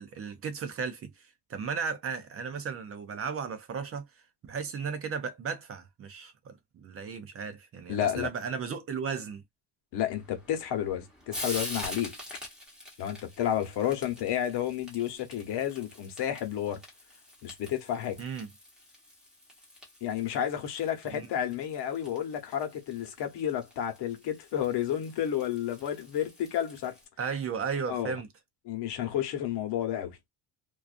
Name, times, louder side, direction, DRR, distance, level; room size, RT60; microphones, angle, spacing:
voice 1, 0.0-4.1 4.4-9.4 18.2-18.5 21.1-21.3 27.2-28.3, right 6 dB, 35° right, 0.5 m, -35 dB
voice 2, 7.9-8.3 9.9-12.1 13.0-16.8 17.4-18.2 20.0-27.0 27.9-28.2 28.6-30.2, left 10 dB, 80° left, 1.0 m, -31 dB
Frying (food), 10.1-27.1, left 1 dB, ahead, 0.9 m, -46 dB
2.5 x 2.3 x 2.4 m
cardioid pair, 155°, 40 cm